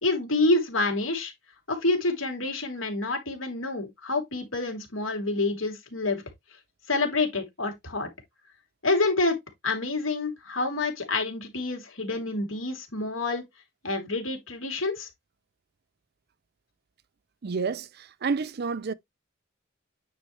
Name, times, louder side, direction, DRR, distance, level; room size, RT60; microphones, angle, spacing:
voice 1, 0.0-1.3 1.7-6.2 6.9-8.1 8.8-9.4 9.6-13.4 13.8-15.1, left 2 dB, 80° left, 3.0 m, -27 dB
voice 2, 17.4-18.9, right 5 dB, 50° right, 0.5 m, -29 dB
9.2 x 5.3 x 3.2 m
head